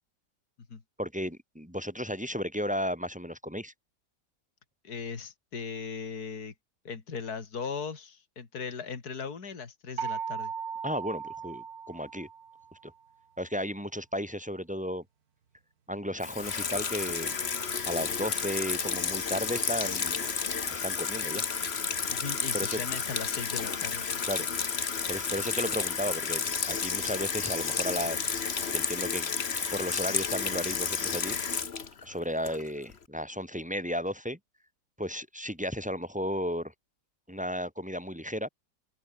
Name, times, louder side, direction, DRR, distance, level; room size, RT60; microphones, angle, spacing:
voice 1, 1.0-3.7 10.8-12.3 12.8-12.9 13.4-15.0 15.9-17.4 17.9-20.3 20.7-21.4 22.5-22.8 24.2-24.5 24.8-28.3 28.7-29.3 29.7-31.5 32.0-34.4 35.0-36.7 37.3-38.5, equal, 5° right, 2.6 m, -34 dB
voice 2, 4.8-6.5 6.8-10.5 22.1-24.0, left 5 dB, 60° left, 3.0 m, -38 dB
sound 1, 10.0-12.7, right 6 dB, 60° right, 2.2 m, -37 dB
Water tap faucet / Sink (filling or washing), 16.2-32.9, left 6 dB, 40° left, 1.5 m, -31 dB
open air
omnidirectional pair, 1.8 m